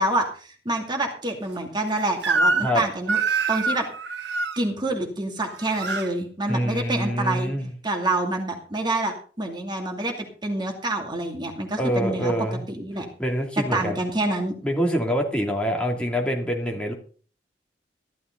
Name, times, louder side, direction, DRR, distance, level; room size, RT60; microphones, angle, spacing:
voice 1, 0.0-3.2 3.5-3.9 4.6-7.5 7.8-10.1 10.4-12.3 12.7-13.1 13.6-14.5, right 2 dB, 25° right, 2 dB, 2.5 m, -27 dB
Crying sobbing / Screech, 2.2-2.8 3.1-4.6 5.4-6.1, right 3 dB, 70° right, 1.5 m, -25 dB
voice 2, 6.5-7.7 11.8-12.6 13.2-14.0 14.6-16.9, equal, 5° left, 0 dB, 2.6 m, -25 dB
14.5 x 12.5 x 3.9 m, 0.40 s
head